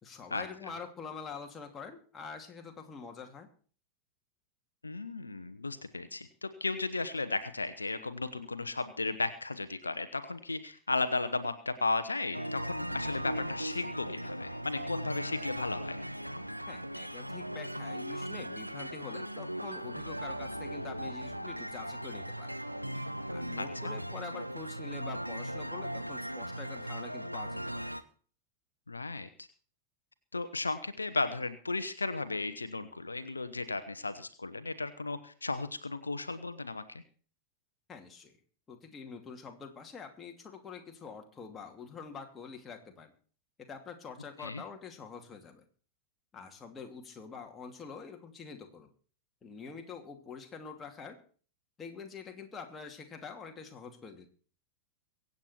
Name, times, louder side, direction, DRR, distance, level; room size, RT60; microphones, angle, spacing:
voice 1, 0.0-3.5 16.7-22.6 23.3-27.9 37.9-38.4 38.7-43.1 43.7-45.7 46.3-48.9 49.4-51.2 51.8-54.3, left 5 dB, 20° left, 3 dB, 2.6 m, -46 dB
voice 2, 4.8-16.0 23.6-23.9 28.9-29.5 30.3-37.0 44.4-44.6, left 3 dB, 80° left, 11 dB, 1.0 m, -35 dB
sound 1, 12.3-28.0, equal, 90° right, 0.8 m, -38 dB
23.5 x 8.6 x 4.4 m, 0.42 s
figure-of-eight pair, 90°, 0 cm